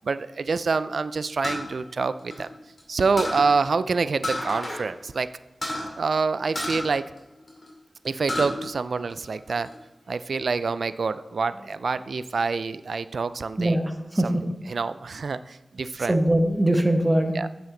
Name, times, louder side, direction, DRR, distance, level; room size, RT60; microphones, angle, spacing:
voice 1, 0.0-2.5 2.9-5.3 6.0-7.0 8.0-9.7 10.1-13.8 14.2-14.3 14.7-16.2 17.4-17.5, right 4 dB, 75° right, 14 dB, 0.3 m, -26 dB
sound 1, 1.4-2.8 3.2-3.5 4.2-4.8 5.1-5.2 5.6-5.9 6.5-7.7 8.0-8.5 9.0-9.7, left 1 dB, 35° left, 2.6 m, -31 dB
voice 2, 13.6-14.4 16.1-17.4, right 1 dB, 20° right, 5 dB, 0.9 m, -22 dB
7.8 x 7.0 x 3.8 m, 1.0 s
wide cardioid pair, 100°, 0 cm